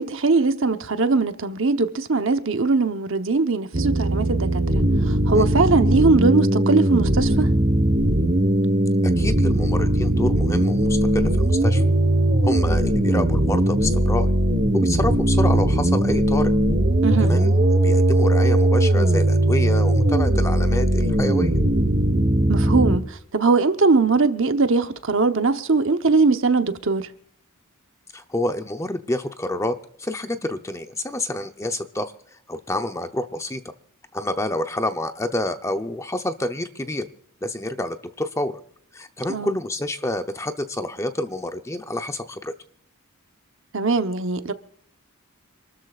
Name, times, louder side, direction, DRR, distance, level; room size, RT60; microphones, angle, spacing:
voice 1, 0.0-4.6 5.1-7.5 17.0-17.3 22.5-27.1 39.3-39.6 43.7-44.5, right 3 dB, 60° right, 1.0 m, -20 dB
sound 1, 3.7-23.0, right 1 dB, 40° right, 1.5 m, -19 dB
voice 2, 9.2-11.8 12.4-14.3 14.7-16.5 17.2-21.6 28.1-32.1 32.5-33.6 34.1-37.1 37.4-38.5 38.9-42.5, left 1 dB, 15° left, 0.7 m, -28 dB
27.0 x 13.0 x 2.5 m
head